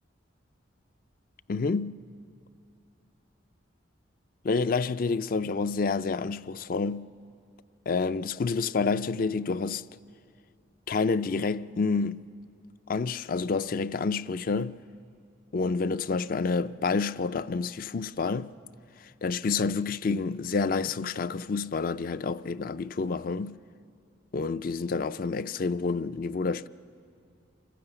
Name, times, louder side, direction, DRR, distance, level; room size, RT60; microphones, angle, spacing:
voice 1, 1.5-2.0 4.4-7.1 7.9-9.9 10.9-12.2 12.9-14.8 15.5-18.5 19.0-23.6 24.3-26.7, left 4 dB, 45° left, 0.4 m, -28 dB
26.5 x 12.5 x 8.0 m
head